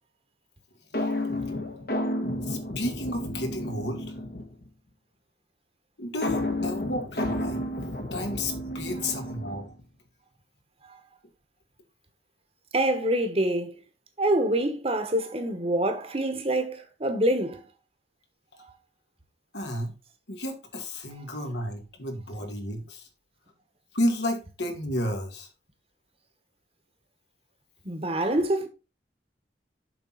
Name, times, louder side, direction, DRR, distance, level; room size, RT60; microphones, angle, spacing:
sound 1, 0.9-4.7 6.2-9.8, left 1 dB, 55° left, 1.5 m, -31 dB
voice 1, 2.5-4.1 6.0-7.6 8.1-9.7 19.5-19.9 20.3-23.1 23.9-25.5, left 1 dB, 75° left, 2.2 m, -32 dB
voice 2, 12.7-13.8 14.2-17.6 27.8-28.7, right 1 dB, 35° right, 1.4 m, -26 dB
7.4 x 6.1 x 4.1 m
head